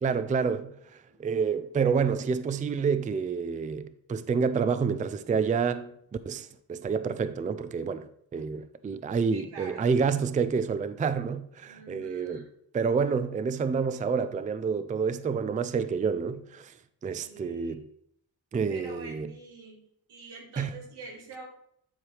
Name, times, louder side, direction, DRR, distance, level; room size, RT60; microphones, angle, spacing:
voice 1, 0.0-5.9 6.3-12.5 12.7-16.7 17.0-17.8 18.5-19.3 20.6-20.8, right 5 dB, 20° right, 0.4 m, -28 dB
voice 2, 9.3-9.9 11.7-12.5 17.1-17.9 18.7-19.8 20.1-21.5, right 3 dB, 90° right, 2.2 m, -46 dB
10.5 x 4.7 x 3.3 m
cardioid pair, 85°, 40 cm